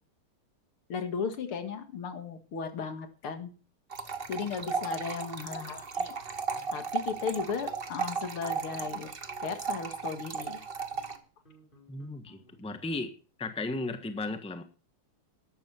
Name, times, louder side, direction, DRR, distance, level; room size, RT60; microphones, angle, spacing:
voice 1, 0.9-3.5 4.3-6.1 6.7-9.1 9.4-10.6, left 6 dB, 85° left, 8 dB, 2.9 m, -36 dB
sound 1, 3.9-11.2, right 5 dB, 30° right, 1.3 m, -35 dB
sound 2, 4.1-5.1 5.5-5.9 6.3-6.8 7.1-7.3 7.6-8.1 8.5-12.8, left 2 dB, 20° left, 5.0 m, -59 dB
voice 2, 11.9-13.1 13.4-14.6, left 2 dB, 5° left, 8 dB, 1.0 m, -35 dB
12.5 x 12.0 x 4.4 m, 0.38 s
omnidirectional pair, 2.3 m